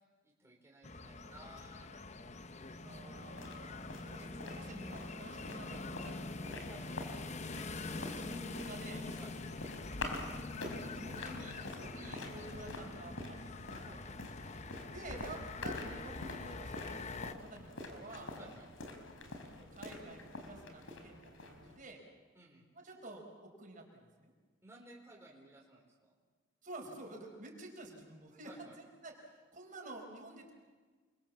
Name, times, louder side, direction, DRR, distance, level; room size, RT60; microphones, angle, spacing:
voice 1, 0.2-3.0 6.7-7.0 9.2-9.3 11.8-12.0 13.8-14.3 18.4-18.7 22.3-22.6 24.6-26.1 28.4-28.8, right 1 dB, 15° right, -3 dB, 4.1 m, -57 dB
sound 1, 0.8-17.3, left 3 dB, 35° left, 0.8 m, -45 dB
voice 2, 2.8-6.6 7.8-9.1 10.2-13.8 14.9-18.3 19.5-22.0 22.7-24.3 26.6-30.5, right 2 dB, 40° right, 1 dB, 5.3 m, -50 dB
sound 2, 3.2-21.8, left 2 dB, 85° left, 4.4 m, -47 dB
29.0 x 23.0 x 7.4 m, 1.4 s
head